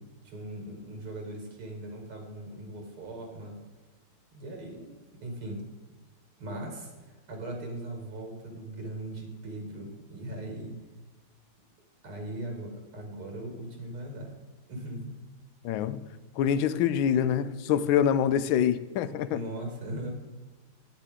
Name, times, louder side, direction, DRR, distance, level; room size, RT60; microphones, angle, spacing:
voice 1, 0.0-3.6 4.3-4.9 5.2-5.7 6.4-10.7 12.0-14.3 14.7-15.2 19.3-20.1, right 1 dB, 90° right, 2.9 m, -39 dB
voice 2, 15.6-16.0 16.4-19.4, left 9 dB, 75° left, 1.3 m, -25 dB
13.0 x 9.6 x 3.7 m
omnidirectional pair, 2.4 m